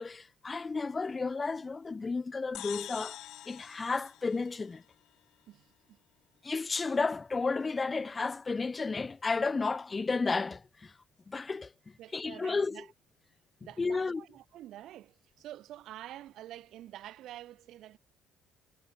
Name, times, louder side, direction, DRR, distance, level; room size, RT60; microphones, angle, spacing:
voice 1, 0.0-3.2 3.5-4.8 6.4-10.9 11.3-11.7 12.1-12.8 13.8-14.2, left 4 dB, 15° left, 0.3 m, -32 dB
sound 1, 2.5-5.1, left 14 dB, 55° left, 0.9 m, -45 dB
voice 2, 5.5-6.0 12.0-12.9 13.6-18.0, right 13 dB, 50° right, 5.6 m, -48 dB
cardioid pair, 175°, 0 cm